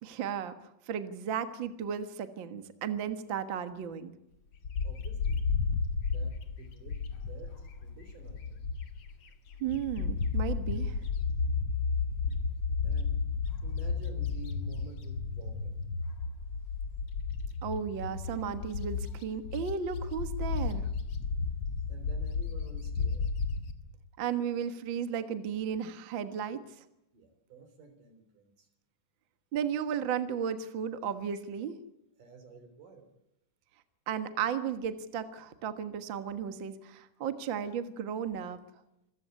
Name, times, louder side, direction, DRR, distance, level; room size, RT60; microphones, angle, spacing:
voice 1, 0.0-4.1 9.6-11.0 17.6-20.9 24.2-26.8 29.5-31.7 34.1-38.6, right 8 dB, 50° right, 10 dB, 1.7 m, -34 dB
Bird, 4.6-9.1 9.5-23.7, left 5 dB, 50° left, 2.3 m, -33 dB
voice 2, 4.8-5.4 6.0-8.6 12.8-13.2 13.6-15.8 21.9-23.3 27.1-28.7 32.2-33.1, right 3 dB, 80° right, 9 dB, 5.1 m, -51 dB
26.0 x 14.5 x 9.4 m, 0.86 s
omnidirectional pair, 3.7 m